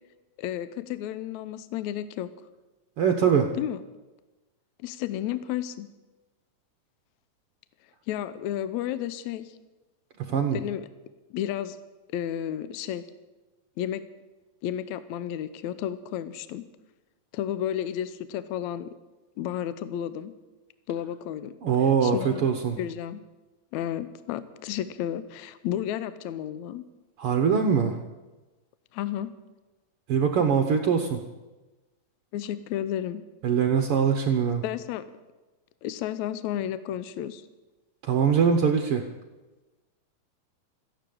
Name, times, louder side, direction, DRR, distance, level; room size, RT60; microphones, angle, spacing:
voice 1, 0.4-2.3 3.5-3.8 4.8-5.9 8.1-9.5 10.5-10.9 11.3-11.8 12.1-13.0 13.8-14.0 14.6-16.6 17.3-18.9 19.4-20.3 20.9-21.5 21.8-22.5 22.8-23.2 23.7-26.8 28.9-29.3 32.3-33.2 34.6-35.0 35.8-37.4, left 11 dB, 75° left, 13 dB, 1.8 m, -32 dB
voice 2, 3.0-3.5 10.3-10.6 21.6-22.8 27.2-28.0 30.1-31.2 33.4-34.6 38.0-39.0, right 7 dB, 70° right, 5 dB, 1.3 m, -22 dB
14.0 x 11.5 x 8.6 m, 1.1 s
omnidirectional pair, 3.9 m